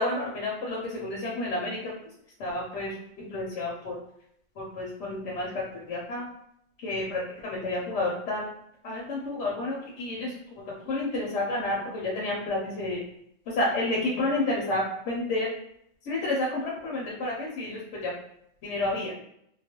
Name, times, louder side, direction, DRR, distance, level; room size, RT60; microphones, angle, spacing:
voice 1, 0.0-1.9 2.4-4.0 4.6-6.3 6.8-8.4 8.8-10.3 10.9-13.0 13.5-15.5 16.0-18.1 18.6-19.1, left 2 dB, 70° left, -3 dB, 0.9 m, -30 dB
2.3 x 2.2 x 2.8 m, 0.74 s
omnidirectional pair, 1.3 m